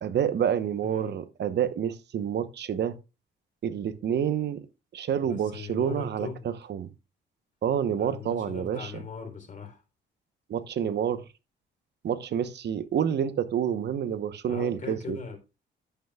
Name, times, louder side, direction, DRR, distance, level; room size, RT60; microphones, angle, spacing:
voice 1, 0.0-3.0 3.6-4.6 4.9-6.9 7.6-9.0 10.5-11.2 12.0-15.2, right 9 dB, 60° right, 0.9 m, -28 dB
voice 2, 0.8-1.1 5.2-6.5 8.0-9.8 14.5-15.4, left 5 dB, 40° left, 3.6 m, -39 dB
11.0 x 8.1 x 2.3 m
cardioid pair, 90°, 20 cm